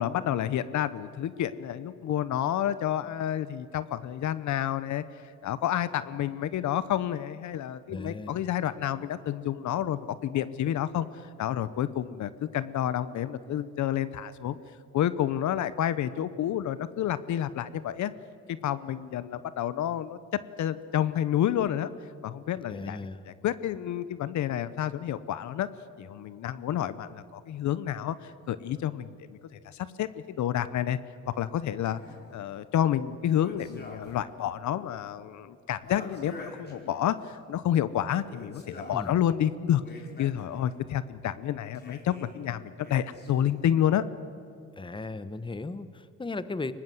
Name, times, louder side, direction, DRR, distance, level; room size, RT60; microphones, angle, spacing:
voice 1, 0.0-5.0 5.4-11.1 11.4-14.6 14.9-18.1 18.5-20.2 20.6-21.9 22.2-23.0 23.3-25.7 26.0-31.0 31.4-32.0 32.3-39.8 40.2-44.0, left 11 dB, 70° left, 15 dB, 0.9 m, -29 dB
voice 2, 7.9-8.4 22.7-23.2 38.9-39.1 44.8-46.7, left 3 dB, 15° left, 14 dB, 1.0 m, -36 dB
sound 1, 31.9-32.4 33.4-34.3 34.6-34.7 35.8-37.3 38.2-39.1 39.6-40.7 41.7-42.3 42.8-43.6, left 2 dB, 35° left, 4.8 m, -46 dB
23.0 x 19.5 x 7.8 m, 2.6 s
cardioid pair, 90°, 30 cm